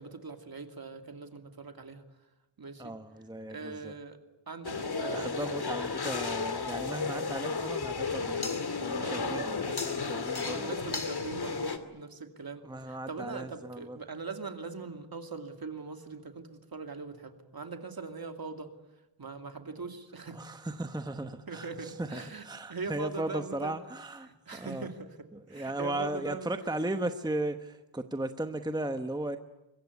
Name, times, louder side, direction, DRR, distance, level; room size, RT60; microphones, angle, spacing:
voice 1, 0.0-2.0 2.6-2.9 3.5-4.2 4.5-5.9 9.0-9.6 10.1-18.7 19.2-20.4 21.5-23.7 24.3-25.2 25.5-26.5, right 4 dB, 50° right, 6 dB, 2.6 m, -41 dB
voice 2, 2.8-3.9 5.1-10.8 12.6-14.0 20.3-24.9 25.3-29.4, right 1 dB, 10° right, 7 dB, 1.1 m, -36 dB
sound 1, 4.6-11.8, left 4 dB, 50° left, 2.5 m, -33 dB
24.5 x 22.5 x 9.7 m, 0.97 s
wide cardioid pair, 140°, 47 cm